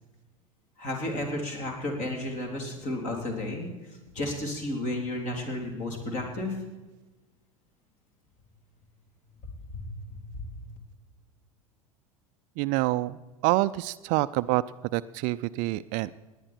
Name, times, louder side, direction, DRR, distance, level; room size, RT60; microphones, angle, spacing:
voice 1, 0.8-3.7 4.1-6.5 10.1-10.4, left 1 dB, 40° left, 2 dB, 3.7 m, -32 dB
voice 2, 12.6-13.2 13.4-14.6 14.9-16.2, right 19 dB, 45° right, 15 dB, 0.4 m, -26 dB
18.5 x 10.5 x 4.5 m, 1.2 s
figure-of-eight pair, 80°, 18 cm